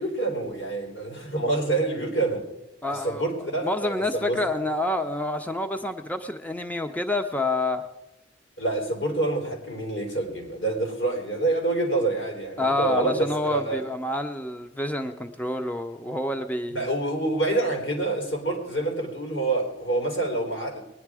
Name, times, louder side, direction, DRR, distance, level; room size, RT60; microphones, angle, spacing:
voice 1, 0.0-2.5 2.9-4.4 8.6-13.8 16.7-20.8, right 2 dB, 75° left, 1 dB, 3.8 m, -27 dB
voice 2, 2.8-3.2 3.6-7.8 12.6-16.9, left 2 dB, 10° left, 7 dB, 0.6 m, -28 dB
21.0 x 10.0 x 4.8 m, 0.95 s
head